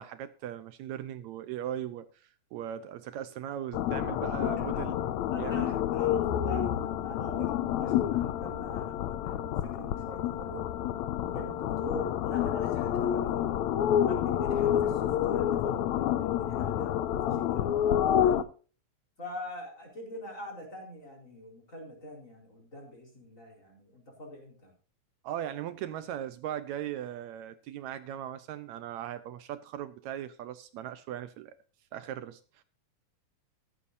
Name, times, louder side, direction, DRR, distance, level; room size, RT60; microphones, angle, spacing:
voice 1, 0.0-5.0 5.4-5.8 25.2-31.6 31.9-32.6, right 11 dB, 75° right, 1.9 m, -38 dB
sound 1, 3.7-18.4, left 10 dB, 80° left, 2.0 m, -29 dB
voice 2, 5.3-10.7 11.3-13.6 14.1-17.9 18.2-18.4 19.2-24.7, left 1 dB, 25° left, 4.6 m, -44 dB
14.0 x 12.5 x 2.7 m
omnidirectional pair, 3.4 m